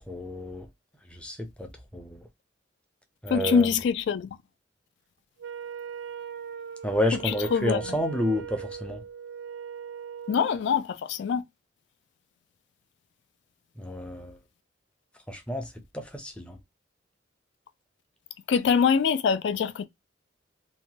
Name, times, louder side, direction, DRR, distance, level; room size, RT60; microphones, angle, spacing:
voice 1, 0.1-0.7 1.1-2.2 3.2-3.7 6.8-9.0 13.8-14.4 15.3-16.6, equal, 5° left, 0.5 m, -30 dB
voice 2, 3.3-4.3 7.2-8.0 10.3-11.4 18.5-19.9, left 6 dB, 70° left, 0.3 m, -24 dB
Wind instrument woodwind instrument, 5.4-10.6, right 7 dB, 60° right, 0.4 m, -39 dB
2.9 x 2.1 x 2.7 m
head